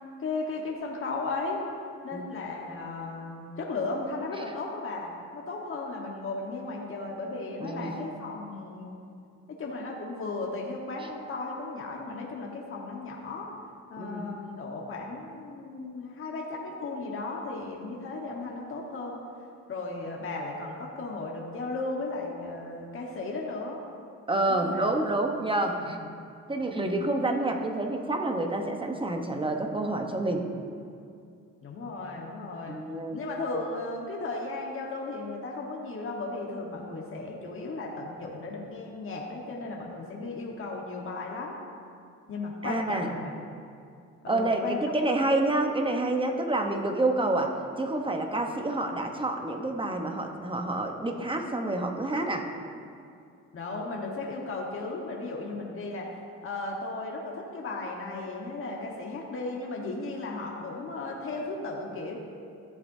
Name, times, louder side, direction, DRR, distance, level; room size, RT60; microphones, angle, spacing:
voice 1, 0.2-1.6 2.0-9.0 9.5-13.5 13.9-19.2 19.7-23.8 24.5-24.9 25.6-26.1 26.5-26.9 31.6-32.8 33.1-41.6 42.3-43.3 44.2-44.9 45.6-45.9 53.5-56.1 56.4-62.2, left 3 dB, 45° left, -2 dB, 1.4 m, -35 dB
voice 2, 7.6-7.9 14.0-14.2 24.3-26.0 26.5-30.5 32.7-33.2 42.6-43.1 44.3-52.5, right 2 dB, 15° right, 3 dB, 1.0 m, -28 dB
14.5 x 7.8 x 2.7 m, 2.4 s
cardioid pair, 90°, 30 cm